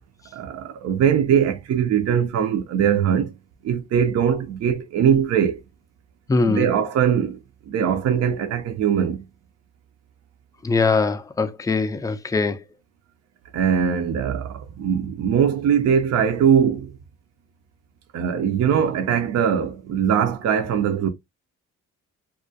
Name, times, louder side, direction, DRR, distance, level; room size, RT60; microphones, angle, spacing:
voice 1, 0.3-3.3 3.6-5.6 6.5-7.4 7.7-9.2 13.5-16.9 18.1-21.1, right 8 dB, 60° right, 0.5 m, -21 dB
voice 2, 6.3-6.7 10.6-12.6, left 4 dB, 10° left, 0.3 m, -21 dB
2.3 x 2.1 x 2.6 m
cardioid pair, 90°, 30 cm